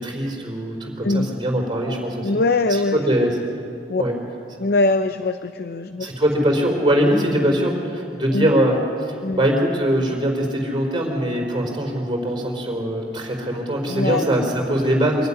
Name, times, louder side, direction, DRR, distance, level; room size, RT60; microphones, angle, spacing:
voice 1, 0.0-2.3 2.7-3.4 4.0-4.1 6.0-15.3, equal, 30° right, 0 dB, 4.3 m, -22 dB
voice 2, 2.2-3.0 3.9-4.0 4.6-6.1 8.3-8.5 9.2-9.4 13.9-14.3, left 2 dB, 60° left, 10 dB, 0.6 m, -22 dB
24.5 x 12.0 x 9.9 m, 2.4 s
head